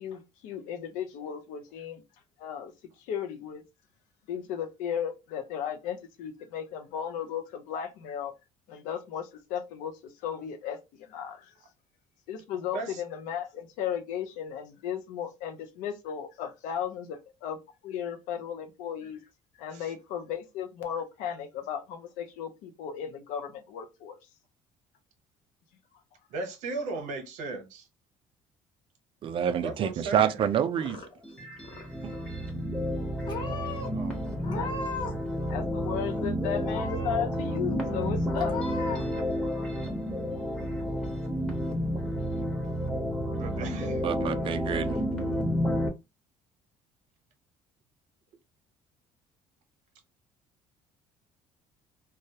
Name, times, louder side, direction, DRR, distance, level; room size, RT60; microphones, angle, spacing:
voice 1, 0.0-2.0 2.4-2.7 3.0-3.6 4.3-8.4 8.7-11.5 12.3-17.6 17.8-19.2 19.6-24.2 34.3-34.7 35.5-38.5, left 8 dB, 85° left, 0.5 m, -35 dB
voice 2, 26.3-27.9 29.6-30.3 33.9-34.8 43.4-44.0, right 3 dB, 70° right, 0.8 m, -37 dB
voice 3, 29.2-31.0 32.0-32.2 44.0-45.0, right 9 dB, 40° right, 0.4 m, -27 dB
Purr / Meow, 30.5-31.3 31.6-32.2 32.9-33.0 33.2-33.9 34.4-35.3 35.5-36.3 36.7-37.3 37.7-37.8 38.3-39.0, left 3 dB, 35° left, 0.9 m, -38 dB
sound 1, 31.2-45.9, equal, 5° left, 0.8 m, -31 dB
2.2 x 2.0 x 2.7 m
cardioid pair, 120°, 13 cm